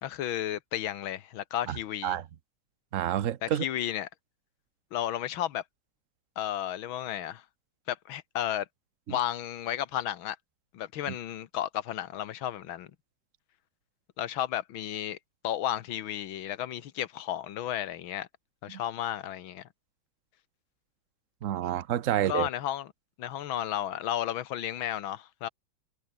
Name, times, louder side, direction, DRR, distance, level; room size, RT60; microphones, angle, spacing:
voice 1, 0.0-2.2 3.4-4.1 4.9-5.6 6.4-7.4 7.9-8.7 9.1-10.4 10.7-12.9 14.2-15.2 15.4-18.3 18.6-19.6 22.3-22.9 23.2-25.5, left 11 dB, 75° left, 1.9 m, -33 dB
voice 2, 2.9-3.6 9.1-9.2 11.1-11.2 18.7-18.8 21.4-22.5, right 11 dB, 50° right, 1.0 m, -29 dB
omnidirectional pair, 2.3 m